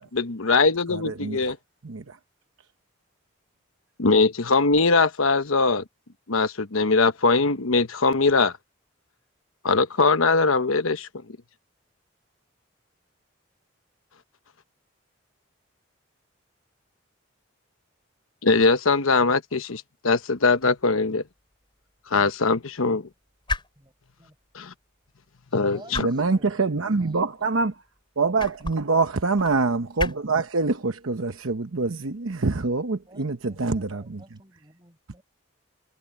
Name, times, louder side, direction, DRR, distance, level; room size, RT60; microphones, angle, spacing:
voice 1, 0.0-1.6 4.0-5.8 6.3-8.5 9.6-11.1 18.4-21.2 22.1-23.1 24.5-24.7 25.5-26.1, left 3 dB, 85° left, 1.1 m, -21 dB
voice 2, 0.9-1.5 1.8-2.2 26.0-27.7 28.2-34.2, right 3 dB, 80° right, 0.9 m, -25 dB
sound 1, 20.5-34.0, left 2 dB, 25° left, 6.9 m, -40 dB
voice 3, 25.5-27.5 33.1-35.2, right 1 dB, 20° right, 7.3 m, -52 dB
head